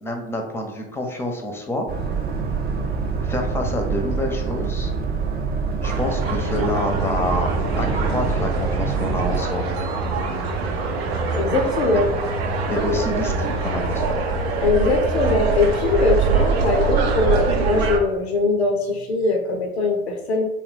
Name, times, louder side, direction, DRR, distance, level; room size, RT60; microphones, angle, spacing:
voice 1, 0.0-1.9 3.2-4.9 5.8-9.6 11.9-12.0 12.7-14.1, left 1 dB, 10° left, 3 dB, 0.6 m, -27 dB
Boat Water vehicle, 1.9-9.4, right 5 dB, 30° right, 0.6 m, -26 dB
sound 1, 5.8-18.0, right 4 dB, 75° right, 0.6 m, -24 dB
voice 2, 11.3-12.1 14.6-20.5, left 3 dB, 90° left, 3 dB, 0.6 m, -21 dB
3.2 x 2.2 x 3.7 m, 0.93 s
figure-of-eight pair, 65°, 31 cm